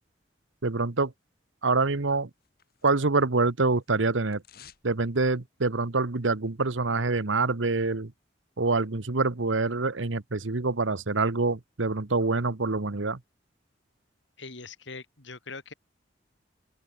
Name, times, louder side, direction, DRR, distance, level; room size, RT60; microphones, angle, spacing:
voice 1, 0.6-1.1 1.6-2.3 2.8-4.4 4.8-8.1 8.6-13.2, right 3 dB, 85° right, 1.2 m, -26 dB
sound 1, 2.1-3.4 3.6-4.9 5.2-5.3, left 9 dB, 50° left, 7.5 m, -55 dB
voice 2, 14.4-15.7, left 4 dB, 75° left, 3.1 m, -42 dB
open air
head